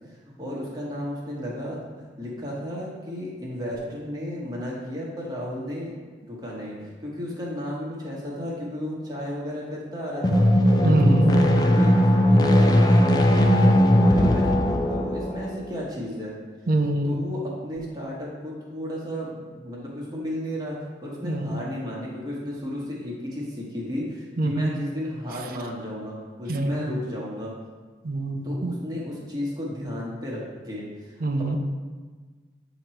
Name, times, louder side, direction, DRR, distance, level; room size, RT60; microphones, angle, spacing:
voice 1, 0.1-5.9 6.3-10.4 10.7-16.3 17.0-27.5 28.4-31.1, equal, 20° right, -5 dB, 1.3 m, -33 dB
sound 1, 10.1-15.8, equal, 20° left, 0.4 m, -18 dB
voice 2, 10.8-11.4 16.7-17.2 21.2-21.6 24.4-24.7 26.5-26.9 28.0-28.7 31.2-31.6, right 2 dB, 50° right, 6 dB, 0.5 m, -25 dB
8.2 x 3.0 x 4.4 m, 1.4 s
head